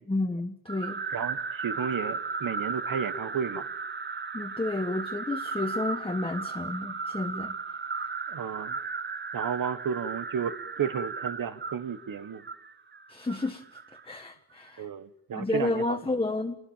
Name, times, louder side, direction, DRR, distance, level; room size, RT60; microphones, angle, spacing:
voice 1, 0.1-1.0 4.3-7.6 13.1-13.6 14.0-14.9 15.3-16.6, left 2 dB, 15° left, 1.4 m, -31 dB
sound 1, 0.7-14.0, right 4 dB, 35° right, 1.1 m, -35 dB
voice 2, 1.1-3.7 8.3-8.8 9.3-12.4 14.8-16.0, right 7 dB, 75° right, 1.4 m, -33 dB
27.5 x 21.0 x 7.4 m
wide cardioid pair, 120°, 33 cm